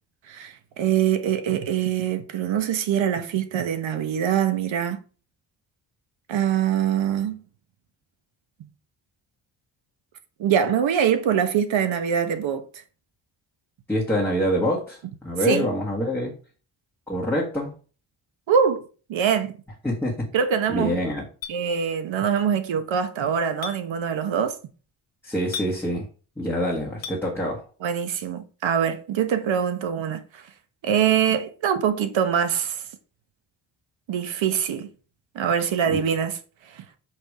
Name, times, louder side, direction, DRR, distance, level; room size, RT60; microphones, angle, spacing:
voice 1, 0.3-5.0 6.3-7.4 8.6-8.7 10.4-12.8 15.4-15.7 18.5-18.8 19.1-19.5 20.3-21.0 21.5-24.6 27.8-30.4 30.8-32.8 34.1-34.9 35.3-36.4 36.7-36.8, right 8 dB, 80° right, 1.2 m, -24 dB
voice 2, 13.9-16.3 17.1-17.7 19.8-20.3 20.7-21.2 25.2-26.0 26.4-27.6 35.9-36.0, equal, 5° left, 1.6 m, -25 dB
Chink clink, 21.4-21.6 23.6-23.8 25.5-25.7 27.0-27.2, left 8 dB, 80° left, 1.3 m, -33 dB
5.9 x 5.0 x 4.9 m
wide cardioid pair, 150°, 45 cm